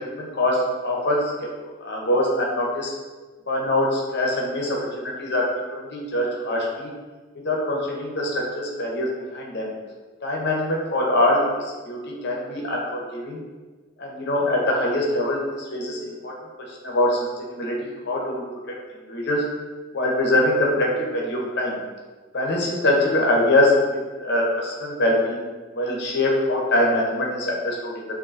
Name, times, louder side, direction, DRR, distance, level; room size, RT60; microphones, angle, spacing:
voice 1, 0.0-1.5 1.8-2.9 3.5-5.4 5.7-6.9 7.4-9.7 10.2-13.4 14.0-16.3 16.8-18.7 19.1-19.4 19.9-21.8 22.3-25.5 25.7-28.1, left 1 dB, 60° left, -2 dB, 0.8 m, -23 dB
5.0 x 2.6 x 2.6 m, 1.3 s
head